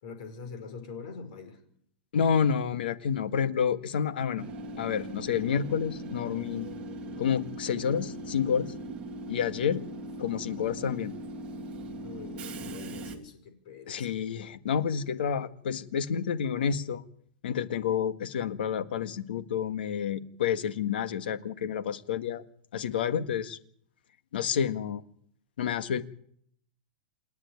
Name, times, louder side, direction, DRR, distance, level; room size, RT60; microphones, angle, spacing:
voice 1, 0.0-1.6 12.0-14.1, left 5 dB, 45° left, 5.3 m, -44 dB
voice 2, 2.1-4.4 4.8-6.7 7.2-8.7 9.3-9.8 10.2-11.1 13.9-17.0 17.4-22.4 22.7-23.6 24.3-25.0 25.6-26.0, left 7 dB, 75° left, 1.7 m, -29 dB
Train / Subway metro underground, 4.4-13.2, right 1 dB, 20° right, 2.3 m, -39 dB
28.5 x 9.7 x 9.5 m
supercardioid pair, 180°, 5 cm